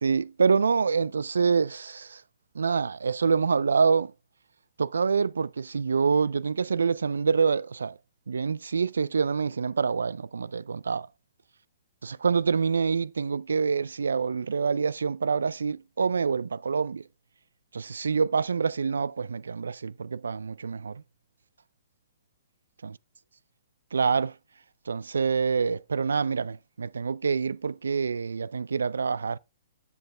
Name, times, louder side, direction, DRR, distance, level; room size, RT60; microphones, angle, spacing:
voice 1, 0.0-2.2 2.5-4.1 4.8-8.0 8.3-11.1 12.0-17.0 17.7-21.0 22.8-22.9 23.9-24.3 24.9-29.4, right 5 dB, 80° right, 0.3 m, -26 dB
8.2 x 7.5 x 3.3 m
figure-of-eight pair, 120°, 0 cm